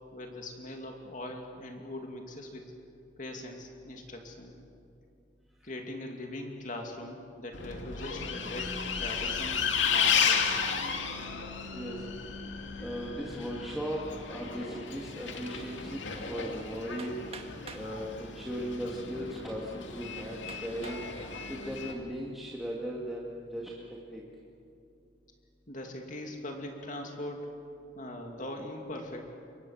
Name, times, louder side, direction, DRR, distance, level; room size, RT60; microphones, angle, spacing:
voice 1, 0.1-2.6 3.2-4.5 5.6-10.6 25.7-27.5 27.9-29.3, left 1 dB, 45° left, 2 dB, 2.6 m, -41 dB
Bus, 7.5-21.9, left 6 dB, 75° left, 2.6 m, -33 dB
voice 2, 11.7-12.0 12.8-14.0 14.3-17.1 17.7-21.0 21.5-24.2, equal, ahead, -5 dB, 2.3 m, -37 dB
Hammer, 17.0-17.9 18.8-18.9 19.5-19.6 20.5-21.1 21.7-22.1, right 4 dB, 30° right, 1.9 m, -47 dB
28.0 x 24.5 x 7.3 m, 2.5 s
head